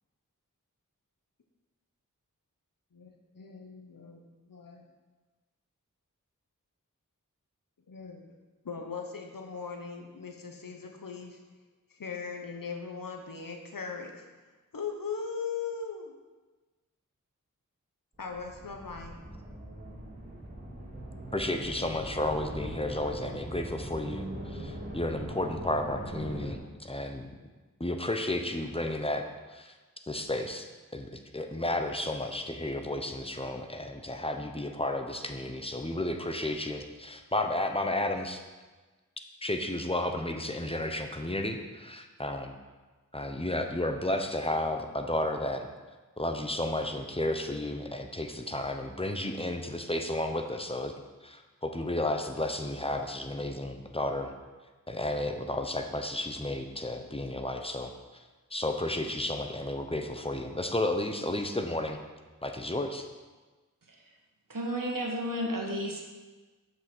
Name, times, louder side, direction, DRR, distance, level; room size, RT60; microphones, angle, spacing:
voice 1, 2.9-4.9 7.9-8.3 8.6-11.4 11.9-14.2 14.7-16.2 18.2-19.1, left 5 dB, 85° left, 3 dB, 1.2 m, -39 dB
sound 1, 18.1-26.5, right 1 dB, 30° right, 2.9 m, -41 dB
voice 2, 21.3-27.3 27.8-29.2 29.5-29.7 30.1-30.7 30.9-38.4 39.4-42.5 43.1-45.6 46.2-50.9 51.2-54.3 54.9-57.9 58.5-62.0 62.4-63.1, left 1 dB, 15° left, 5 dB, 1.0 m, -32 dB
voice 3, 64.5-66.0, equal, 80° right, 0 dB, 1.6 m, -32 dB
7.8 x 6.4 x 6.2 m, 1.3 s
wide cardioid pair, 50°, 33 cm